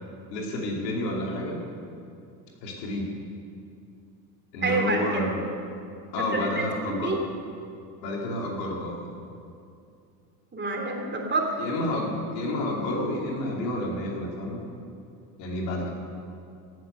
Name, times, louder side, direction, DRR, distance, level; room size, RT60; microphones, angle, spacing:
voice 1, 0.3-1.6 2.6-3.1 4.5-5.4 6.1-7.2 8.0-9.1 11.6-14.6 15.4-15.9, left 1 dB, 85° left, -1 dB, 2.9 m, -30 dB
voice 2, 4.6-5.2 6.2-7.2 10.5-11.6, right 2 dB, 20° right, 1 dB, 3.0 m, -28 dB
17.0 x 7.6 x 6.7 m, 2.5 s
hypercardioid pair, 80°, 49 cm